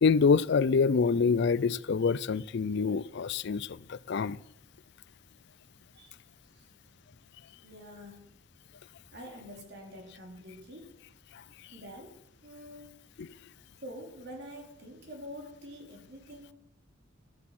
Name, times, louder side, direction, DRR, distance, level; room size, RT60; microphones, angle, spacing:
voice 1, 0.0-4.4 13.2-13.3, left 5 dB, 60° left, 0.4 m, -26 dB
voice 2, 7.6-8.4 9.1-11.0 11.7-12.1 12.4-13.0 13.8-16.5, equal, 60° right, 2.8 m, -46 dB
13.0 x 8.5 x 5.9 m
head